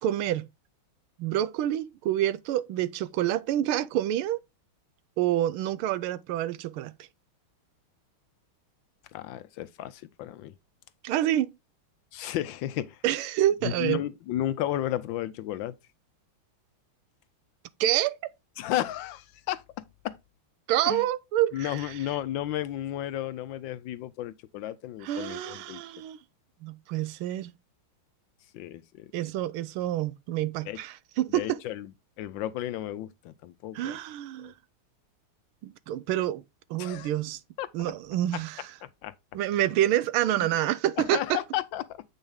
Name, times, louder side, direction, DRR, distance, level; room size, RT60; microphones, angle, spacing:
voice 1, 0.0-0.5 1.2-4.4 5.2-6.9 11.0-11.5 13.0-14.0 17.8-18.2 20.7-21.9 25.0-26.2 26.6-27.5 29.1-31.6 33.7-34.5 35.6-36.4 36.7-37.4 37.7-38.7 39.3-41.4, right 13 dB, 90° right, 1.5 m, -27 dB
voice 2, 9.1-10.5 12.1-13.0 13.6-15.7 18.6-20.2 20.9-21.0 21.5-25.8 28.5-29.1 30.7-30.8 31.3-31.9 32.2-34.0 34.4-34.5 36.8-37.1 37.6-37.7 38.3-38.4 38.8-39.1 40.4-40.5 41.0-42.0, left 13 dB, 75° left, 1.2 m, -33 dB
8.1 x 5.5 x 3.5 m
omnidirectional pair, 2.3 m